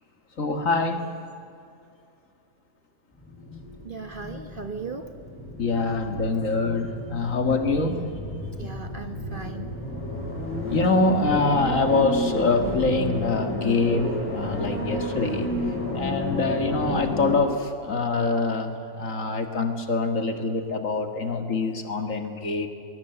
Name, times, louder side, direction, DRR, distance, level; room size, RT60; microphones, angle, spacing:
voice 1, 0.4-1.1 5.6-8.0 8.6-8.7 10.6-15.5 15.9-22.7, left 3 dB, 60° left, 6 dB, 2.2 m, -25 dB
sound 1, 3.2-17.4, left 1 dB, 10° left, 6.6 m, -31 dB
voice 2, 3.8-5.1 8.6-9.7, right 5 dB, 40° right, 7 dB, 1.1 m, -37 dB
23.0 x 20.5 x 8.0 m, 2.4 s
omnidirectional pair, 1.6 m